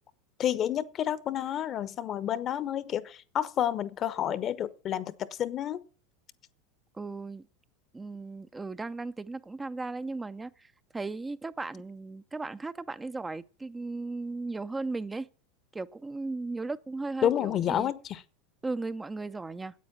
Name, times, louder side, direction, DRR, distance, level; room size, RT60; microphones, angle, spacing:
voice 1, 0.4-5.8 17.2-18.2, left 10 dB, 40° left, 0.8 m, -30 dB
voice 2, 6.9-7.5 7.9-15.3 15.7-17.9 18.6-19.7, right 3 dB, 15° right, 0.5 m, -36 dB
9.3 x 8.6 x 7.4 m
hypercardioid pair, 85°, 0 cm